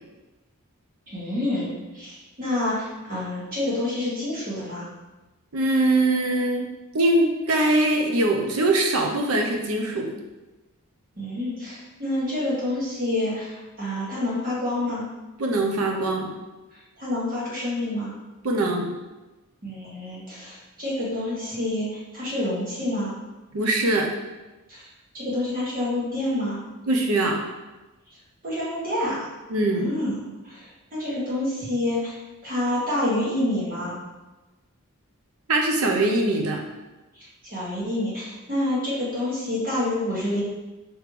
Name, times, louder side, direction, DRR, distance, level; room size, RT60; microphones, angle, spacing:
voice 1, 1.1-4.9 11.2-15.0 17.0-18.1 19.6-23.2 24.7-24.9 25.1-26.6 28.4-29.3 29.7-32.1 32.4-34.0 37.4-40.4, left 1 dB, 40° right, -7 dB, 1.5 m, -28 dB
voice 2, 5.5-6.6 6.9-10.2 15.4-16.3 18.4-18.9 23.5-24.1 26.9-27.4 29.5-29.9 35.5-36.6, right 2 dB, 80° right, 2 dB, 0.7 m, -22 dB
5.1 x 3.1 x 3.2 m, 1.1 s
head